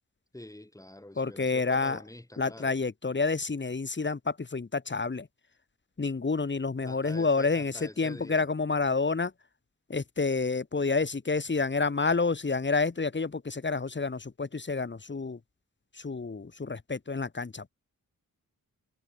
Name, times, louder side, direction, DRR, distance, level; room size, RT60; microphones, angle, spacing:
voice 1, 0.3-2.7 6.9-8.5, left 1 dB, 10° left, 5.0 m, -46 dB
voice 2, 1.2-2.0 2.4-5.3 6.0-9.3 9.9-15.4 15.9-17.7, left 4 dB, 35° left, 2.7 m, -29 dB
wide cardioid pair, 175°, 34 cm